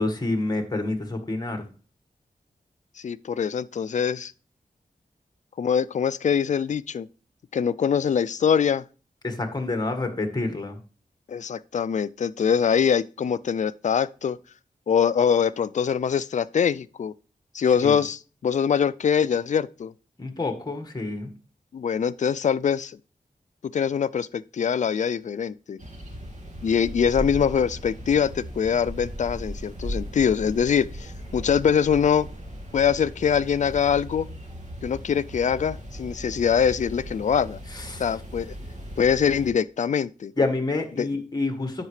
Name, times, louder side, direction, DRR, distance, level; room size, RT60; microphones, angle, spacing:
voice 1, 0.0-1.6 9.2-10.8 17.8-18.0 20.2-21.3 37.7-38.1 40.4-41.9, left 2 dB, 25° left, 1.6 m, -28 dB
voice 2, 3.0-4.3 5.6-7.1 7.5-8.8 11.3-14.4 14.9-17.1 17.5-19.9 21.7-23.0 23.6-25.8 26.6-32.3 32.7-34.3 34.8-37.6 38.0-38.5 39.0-40.3 41.0-41.1, left 7 dB, 55° left, 0.4 m, -23 dB
sound 1, 25.8-39.5, equal, 55° right, 2.1 m, -37 dB
10.5 x 7.3 x 3.3 m
wide cardioid pair, 110°, 15 cm